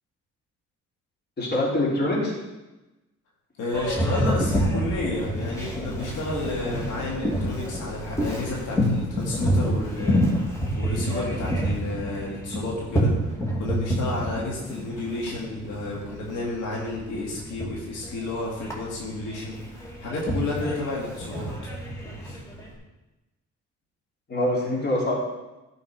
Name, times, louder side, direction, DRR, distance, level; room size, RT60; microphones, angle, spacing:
voice 1, 1.4-2.3 24.3-25.1, left 1 dB, 35° left, -4 dB, 3.6 m, -24 dB
voice 2, 3.6-13.1 13.6-19.6 20.0-21.5 22.2-22.4, left 2 dB, 90° left, -3 dB, 2.2 m, -31 dB
Boat Water vehicle, 3.7-22.7, equal, 10° left, 2.5 m, -28 dB
11.5 x 5.3 x 5.2 m, 1.0 s
cardioid pair, 90°, 30 cm